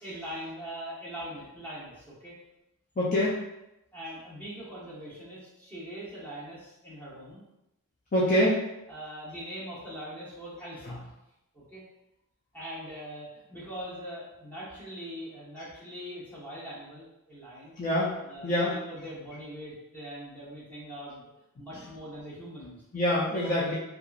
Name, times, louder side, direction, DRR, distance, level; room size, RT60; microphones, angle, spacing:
voice 1, 0.0-2.4 3.9-7.4 8.9-11.1 11.5-11.8 12.5-17.8 18.2-21.3 21.5-22.8 23.3-23.6, equal, 10° left, -9 dB, 1.0 m, -42 dB
voice 2, 3.0-3.4 8.1-8.6 10.8-10.9 17.8-18.2 18.4-18.8 22.9-23.7, left 1 dB, 35° left, -7 dB, 0.4 m, -25 dB
2.8 x 2.3 x 2.4 m, 0.89 s
head